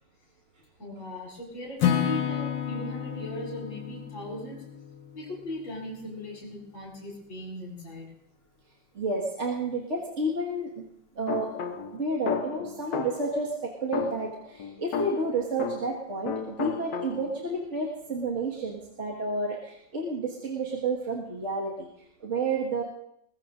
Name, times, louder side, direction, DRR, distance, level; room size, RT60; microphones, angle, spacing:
voice 1, 0.8-4.6 5.1-8.1, equal, 40° left, -5 dB, 4.8 m, -38 dB
Acoustic guitar / Strum, 1.8-5.8, left 10 dB, 90° left, 1.9 m, -31 dB
voice 2, 9.0-10.8 11.2-11.5 11.9-21.9 22.2-22.8, right 2 dB, 40° right, -3 dB, 2.0 m, -30 dB
sound 1, 11.3-13.4 13.9-16.0 16.3-17.5, left 7 dB, 65° left, 1.6 m, -34 dB
22.5 x 20.0 x 2.6 m, 0.76 s
omnidirectional pair, 2.0 m